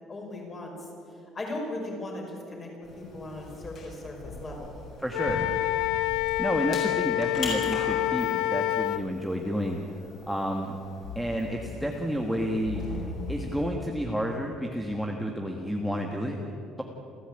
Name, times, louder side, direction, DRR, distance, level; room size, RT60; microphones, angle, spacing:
voice 1, 0.1-0.9 1.3-2.7 3.0-4.7, left 1 dB, 20° left, 0 dB, 5.3 m, -37 dB
sound 1, 2.8-13.7, left 2 dB, 40° left, 7.4 m, -40 dB
voice 2, 5.0-5.5 6.4-9.8 10.3-10.7 11.1-16.4 16.6-16.8, equal, ahead, 1 dB, 1.4 m, -30 dB
Wind instrument woodwind instrument, 5.1-9.0, left 16 dB, 80° left, 0.7 m, -27 dB
29.0 x 14.5 x 8.9 m, 2.7 s
cardioid pair, 175°, 0 cm